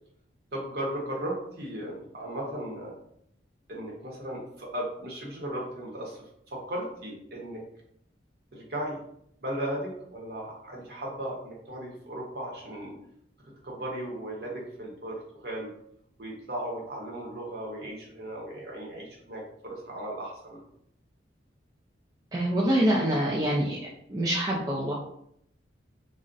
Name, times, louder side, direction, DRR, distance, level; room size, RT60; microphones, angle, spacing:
voice 1, 0.5-3.0 3.7-7.6 8.5-9.0 9.4-13.0 13.6-15.7 16.2-20.6, right 1 dB, 55° right, -3 dB, 0.9 m, -36 dB
voice 2, 22.3-23.8 24.1-24.9, right 1 dB, 20° right, -4 dB, 0.3 m, -25 dB
2.4 x 2.0 x 3.9 m, 0.72 s
head